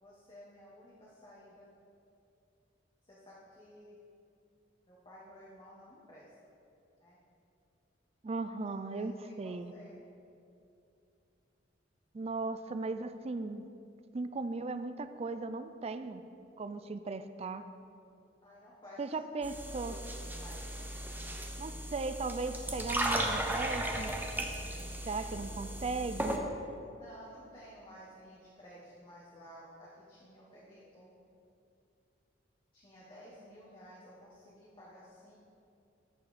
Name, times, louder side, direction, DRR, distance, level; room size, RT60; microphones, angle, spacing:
voice 1, 0.0-1.7 3.0-4.0 4.9-6.3 7.0-7.2 8.9-9.9 18.4-19.1 20.4-20.9 26.9-31.2 32.7-35.4, equal, 25° left, -7 dB, 1.3 m, -54 dB
voice 2, 8.2-9.7 12.1-13.7 14.1-16.2 16.6-17.7 19.0-20.0 21.6-24.1 25.1-26.4, right 3 dB, 35° right, 11 dB, 0.4 m, -37 dB
sound 1, 19.4-26.4, right 1 dB, 10° right, 0.7 m, -36 dB
14.0 x 5.4 x 4.2 m, 2.7 s
head